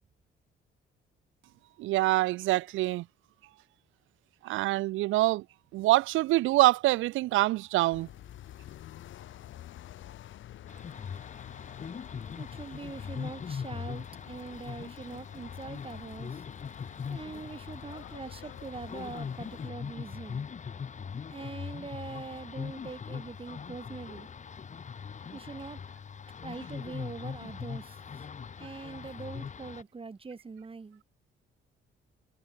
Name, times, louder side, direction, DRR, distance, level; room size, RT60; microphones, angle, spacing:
voice 1, 1.8-3.0 4.4-5.4 5.7-8.1, right 18 dB, 80° right, 0.4 m, -25 dB
sound 1, 7.9-19.7, left 12 dB, 80° left, 4.0 m, -49 dB
sound 2, 10.7-29.8, left 6 dB, 40° left, 1.2 m, -41 dB
voice 2, 12.4-16.4 17.1-20.5 21.3-24.3 25.3-25.8 26.4-28.3 28.6-31.0, right 4 dB, 30° right, 2.1 m, -43 dB
cardioid pair, 90°, 20 cm